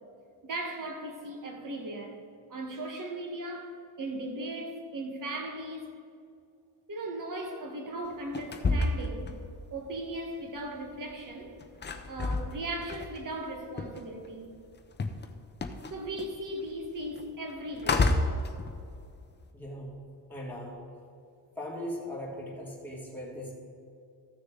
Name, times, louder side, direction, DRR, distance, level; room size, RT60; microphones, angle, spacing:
voice 1, 0.4-2.2 2.5-5.9 6.9-9.3 9.7-11.5 12.1-14.5 15.9-18.2, right 1 dB, 45° right, 1.6 m, -37 dB
sound 1, 8.0-10.2 10.4-14.3 14.6-19.4, left 3 dB, 25° left, 0.7 m, -31 dB
voice 2, 19.5-20.9 21.6-23.5, equal, 5° left, 2.6 m, -39 dB
14.0 x 6.5 x 3.9 m
cardioid pair, 100°, 43 cm